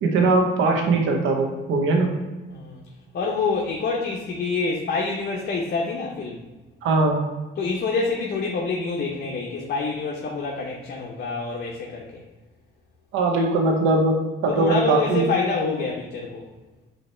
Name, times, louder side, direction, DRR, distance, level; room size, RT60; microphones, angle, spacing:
voice 1, 0.0-2.1 6.8-7.2 13.1-15.3, right 3 dB, 85° right, 2 dB, 0.8 m, -21 dB
voice 2, 2.5-2.8 3.1-6.4 7.6-12.2 14.5-16.5, left 4 dB, 55° left, -1 dB, 0.8 m, -27 dB
5.6 x 2.9 x 3.3 m, 1.2 s
cardioid pair, 90°, 20 cm